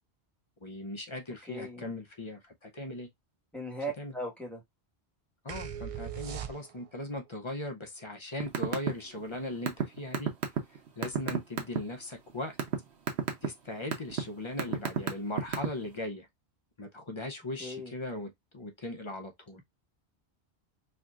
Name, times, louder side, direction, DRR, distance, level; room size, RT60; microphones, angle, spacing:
voice 1, 0.6-3.1 4.0-4.1 5.4-10.3 11.0-12.6 13.4-16.3 16.8-19.6, left 1 dB, 35° left, 0.6 m, -39 dB
voice 2, 1.5-1.8 3.5-4.6 17.6-17.9, right 1 dB, ahead, 1.3 m, -38 dB
sound 1, 5.5-7.0, right 9 dB, 55° right, 0.3 m, -39 dB
sound 2, 8.4-8.9 9.2-11.8 12.3-12.8 13.1-13.5 13.9-14.2 14.6-15.9, right 8 dB, 80° right, 1.1 m, -29 dB
4.3 x 2.8 x 2.4 m
omnidirectional pair, 1.1 m